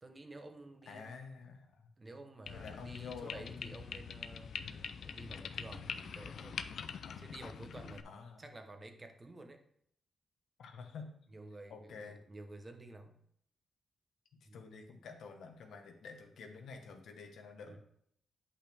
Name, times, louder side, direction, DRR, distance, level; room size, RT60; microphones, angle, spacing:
voice 1, 0.0-1.1 2.0-4.5 5.0-6.7 7.2-8.1 8.4-9.6 11.3-13.2 14.4-14.6 17.7-17.8, right 2 dB, 25° right, 7 dB, 0.9 m, -51 dB
voice 2, 0.9-1.9 2.5-3.8 4.6-5.0 7.0-7.4 8.0-8.4 10.6-11.1 11.7-12.2 14.5-17.8, left 5 dB, 85° left, 4 dB, 1.1 m, -49 dB
sound 1, 2.5-8.0, left 7 dB, 70° left, 0.4 m, -44 dB
8.7 x 5.5 x 3.4 m, 0.68 s
cardioid pair, 120°, 0 cm